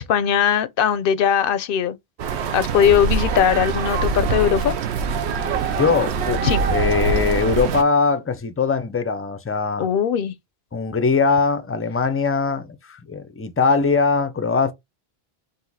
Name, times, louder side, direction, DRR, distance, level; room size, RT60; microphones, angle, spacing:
voice 1, 0.0-2.0 2.5-4.7 6.4-6.6 9.8-10.3, left 8 dB, 65° left, 0.7 m, -19 dB
sound 1, 2.2-7.8, right 5 dB, 80° right, 0.9 m, -23 dB
voice 2, 5.6-9.9 10.7-14.7, left 4 dB, 20° left, 0.3 m, -21 dB
4.1 x 2.7 x 4.0 m
omnidirectional pair, 1.1 m